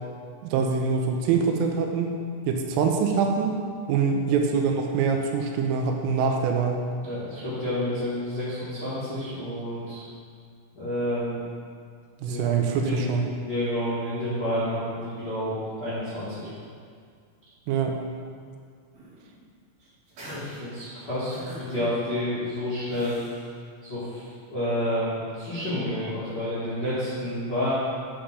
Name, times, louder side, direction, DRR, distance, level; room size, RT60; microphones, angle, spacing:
voice 1, 0.4-2.1 2.5-3.6 3.9-6.8 12.2-13.3 17.7-18.0, right 5 dB, 80° right, 2 dB, 3.3 m, -24 dB
voice 2, 7.0-10.0 10.7-11.4 12.3-12.5 12.8-13.1 13.4-16.5 20.2-23.2 23.8-27.7, left 1 dB, 55° left, -13 dB, 1.1 m, -30 dB
sound 1, 18.9-19.4 19.8-20.6 21.3-21.9 22.9-23.4, right 1 dB, 45° right, 2.5 m, -43 dB
8.8 x 5.8 x 5.2 m, 2.1 s
omnidirectional pair, 5.9 m